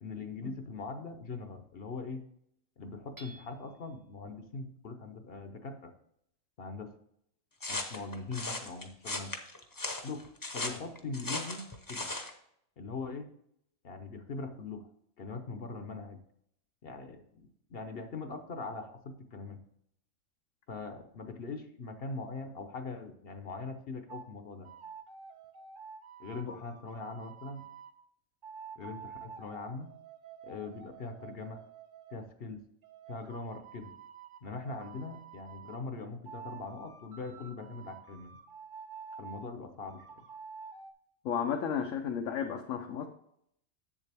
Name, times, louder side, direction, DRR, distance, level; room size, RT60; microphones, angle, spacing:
voice 1, 0.0-2.2 2.8-5.9 6.6-6.9 7.7-9.3 10.0-12.1 12.8-13.3 13.8-14.9 15.2-16.2 16.8-19.6 20.7-24.7 26.2-27.7 28.8-29.9 30.4-31.6 32.1-32.6 33.1-33.9 34.4-38.4 39.2-40.2, left 3 dB, 55° left, 7 dB, 0.9 m, -41 dB
Hammer / Chink clink, 3.2-4.0, right 2 dB, 15° right, 0.8 m, -53 dB
sound 1, 7.6-12.3, left 2 dB, 20° left, 0.7 m, -37 dB
sound 2, 24.1-24.3 24.7-28.0 28.4-32.2 32.8-35.8 36.3-39.5 39.9-40.9, right 6 dB, 50° right, 0.7 m, -49 dB
voice 2, 41.2-43.1, left 7 dB, 80° left, 3 dB, 1.1 m, -33 dB
7.4 x 7.3 x 3.4 m, 0.72 s
omnidirectional pair, 1.3 m